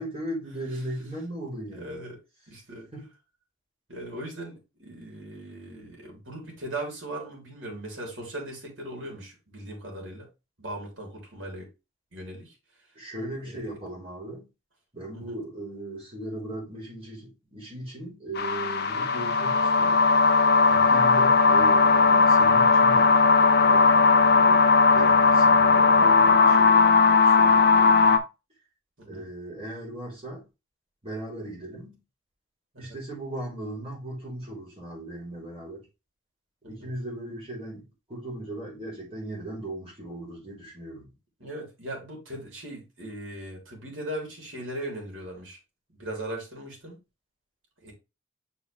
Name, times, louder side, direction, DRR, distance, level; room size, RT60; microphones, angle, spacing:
voice 1, 0.0-2.0 2.9-3.1 12.9-14.5 14.9-28.2 29.1-30.5 31.0-32.0 32.8-35.9 36.6-41.1, right 1 dB, 30° right, 4.0 m, -38 dB
voice 2, 1.7-2.2 2.5-2.9 3.9-10.3 10.6-11.7 12.1-12.5 13.4-13.8 15.1-15.4 20.7-20.9 29.0-29.3 32.7-33.0 36.6-36.9 41.4-45.6 45.9-47.0 47.8-47.9, right 1 dB, 70° right, 3.5 m, -39 dB
sound 1, 18.4-28.2, left 4 dB, 55° left, 0.8 m, -18 dB
6.7 x 4.6 x 3.3 m
head